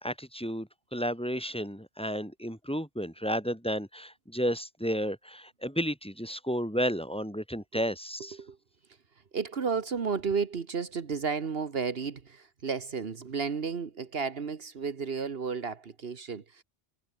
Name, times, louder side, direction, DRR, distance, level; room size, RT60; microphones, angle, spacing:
voice 1, 0.0-8.4, equal, 5° left, 3.7 m, -32 dB
voice 2, 9.3-16.6, right 5 dB, 70° right, 1.5 m, -32 dB
omnidirectional pair, 1.1 m